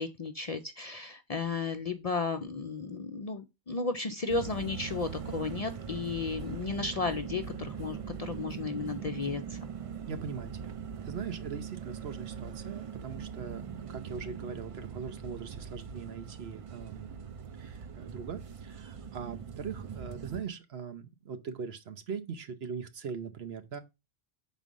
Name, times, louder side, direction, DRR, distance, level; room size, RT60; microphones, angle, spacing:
voice 1, 0.0-9.6, left 4 dB, 50° left, 0.5 m, -34 dB
sound 1, 4.3-20.4, right 7 dB, 55° right, 0.4 m, -41 dB
voice 2, 10.1-10.8 11.0-13.6 13.9-17.2 17.6-23.8, right 6 dB, 70° right, 1.1 m, -41 dB
6.1 x 4.0 x 5.3 m
omnidirectional pair, 1.1 m